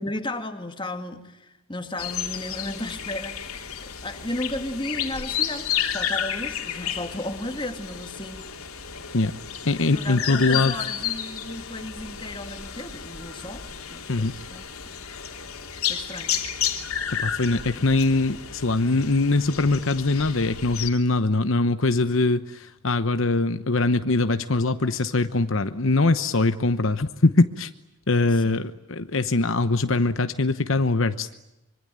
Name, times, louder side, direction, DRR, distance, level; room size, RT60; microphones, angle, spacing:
voice 1, 0.0-3.5 4.0-8.5 9.9-14.6 15.9-16.4 28.3-28.6, left 1 dB, 20° left, 6 dB, 2.4 m, -34 dB
sound 1, 2.0-20.9, left 9 dB, 85° left, 3.2 m, -32 dB
voice 2, 9.6-10.7 14.1-14.3 17.2-27.7 28.1-31.4, left 2 dB, 65° left, 10 dB, 1.0 m, -22 dB
25.5 x 24.5 x 9.0 m, 0.94 s
head